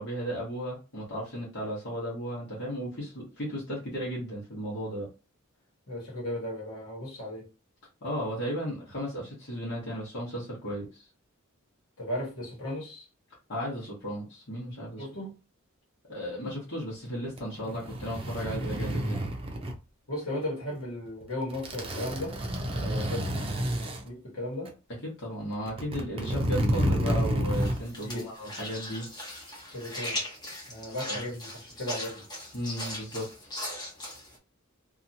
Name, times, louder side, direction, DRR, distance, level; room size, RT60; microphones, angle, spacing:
voice 1, 0.0-5.1 8.0-11.0 13.5-15.1 16.1-19.3 22.8-23.1 25.0-29.1 31.1-31.2 32.5-33.3, equal, 55° left, 1.1 m, -35 dB
voice 2, 5.9-7.5 12.0-13.0 15.0-15.3 20.1-22.4 22.8-23.3 24.0-24.7 28.0-28.3 29.7-30.2 30.7-32.2, left 1 dB, 75° left, 1.3 m, -35 dB
sound 1, 17.3-19.8 21.1-21.2 21.5-24.0 24.7-24.8 25.5-27.8 28.1-28.2, equal, 25° right, 0.5 m, -30 dB
sound 2, 27.5-34.4, left 1 dB, 20° left, 0.9 m, -39 dB
2.8 x 2.4 x 2.6 m
head